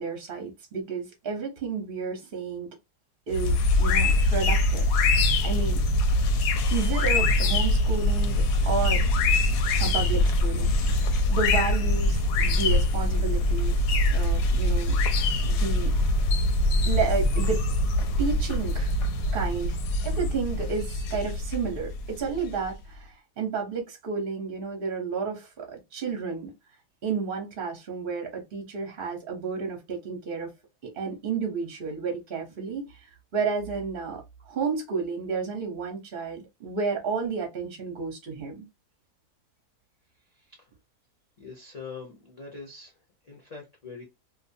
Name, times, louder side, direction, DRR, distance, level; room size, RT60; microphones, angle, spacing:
voice 1, 0.0-2.7 3.3-5.8 6.7-9.1 9.8-10.7 11.3-13.8 14.1-16.0 16.8-17.7 18.2-18.9 19.3-19.8 20.0-26.5 27.0-30.5 30.8-38.7, right 5 dB, 50° right, 0.7 m, -31 dB
sound 1, 3.3-22.7, left 2 dB, 85° left, 1.1 m, -23 dB
voice 2, 41.4-42.9 43.2-44.0, left 4 dB, 40° left, 0.5 m, -43 dB
2.6 x 2.3 x 2.6 m
omnidirectional pair, 1.7 m